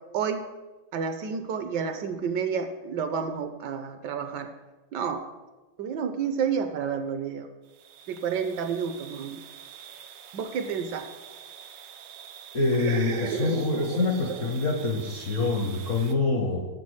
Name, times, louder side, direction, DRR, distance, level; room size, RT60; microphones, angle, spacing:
voice 1, 0.1-0.4 0.9-4.5 4.9-5.2 5.8-7.5 8.1-9.4 10.3-11.1 12.8-14.5, right 6 dB, 75° right, 8 dB, 1.1 m, -30 dB
sound 1, 7.6-16.2, right 8 dB, 90° right, 1.5 m, -46 dB
voice 2, 12.5-16.7, left 3 dB, 60° left, 2 dB, 0.8 m, -26 dB
7.1 x 5.3 x 6.2 m, 1.2 s
omnidirectional pair, 2.1 m